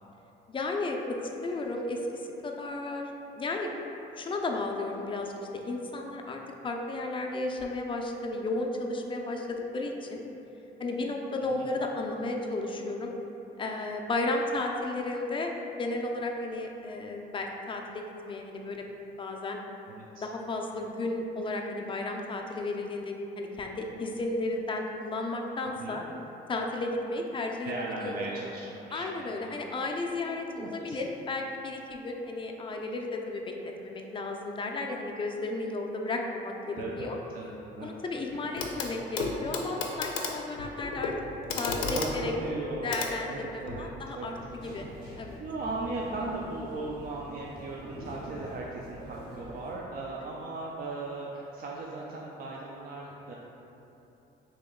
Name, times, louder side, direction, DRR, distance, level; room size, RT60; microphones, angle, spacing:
voice 1, 0.5-3.1 3.4-3.7 4.2-5.3 5.6-10.2 10.8-13.1 13.6-15.5 15.8-18.8 19.2-19.6 20.2-26.0 26.5-27.7 28.0-28.3 28.9-37.2 37.8-41.1 41.6-42.3 42.8-44.3 44.6-44.9 45.2-45.4, left 2 dB, 25° left, 1 dB, 0.4 m, -33 dB
voice 2, 19.9-20.3 25.8-26.0 27.6-29.6 30.4-31.0 36.8-37.1 37.3-37.9 41.9-43.0 43.3-44.6 45.4-53.3, right 2 dB, 50° right, -3 dB, 0.4 m, -38 dB
Clock, 38.6-38.9 39.2-43.9 45.1-45.2, left 4 dB, 85° left, 0.5 m, -34 dB
sound 1, 44.2-49.7, equal, 85° right, 1.1 m, -45 dB
3.0 x 2.9 x 3.6 m, 2.9 s
cardioid pair, 90°, 20 cm